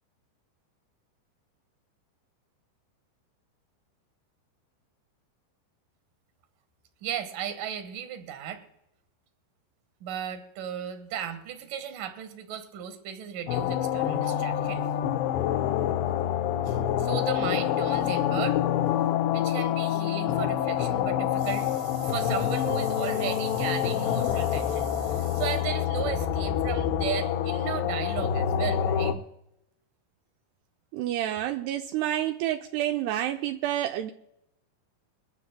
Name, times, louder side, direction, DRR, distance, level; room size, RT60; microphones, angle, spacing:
voice 1, 7.0-8.6 10.0-14.9 16.7-18.6 19.3-29.2, right 9 dB, 65° right, 2.3 m, -35 dB
sound 1, 13.5-29.1, left 10 dB, 80° left, 2.9 m, -27 dB
voice 2, 30.9-34.1, right 12 dB, 85° right, 2.3 m, -29 dB
22.0 x 15.0 x 2.2 m
omnidirectional pair, 5.3 m